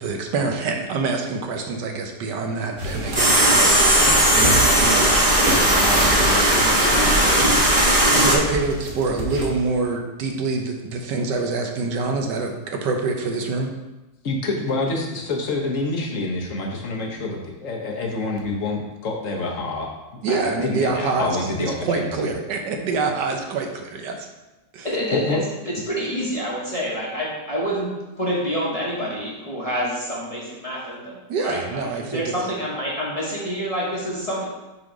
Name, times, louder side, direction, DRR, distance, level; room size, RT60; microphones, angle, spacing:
voice 1, 0.0-7.2 7.7-13.7 20.2-24.3 24.7-24.9 31.3-32.2, right 3 dB, 80° right, 3 dB, 1.4 m, -26 dB
sound 1, 2.8-3.2 3.6-7.5 8.2-9.7, right 1 dB, 50° right, 1.5 m, -29 dB
sound 2, 3.1-8.4, right 1 dB, 25° right, 1.1 m, -17 dB
voice 2, 14.2-19.9 20.3-22.1 25.1-25.4, left 3 dB, 55° left, 0 dB, 1.2 m, -27 dB
voice 3, 24.8-25.4 25.7-27.9 28.2-34.4, equal, 25° left, -6 dB, 1.1 m, -27 dB
6.0 x 3.8 x 5.0 m, 1.1 s
omnidirectional pair, 1.9 m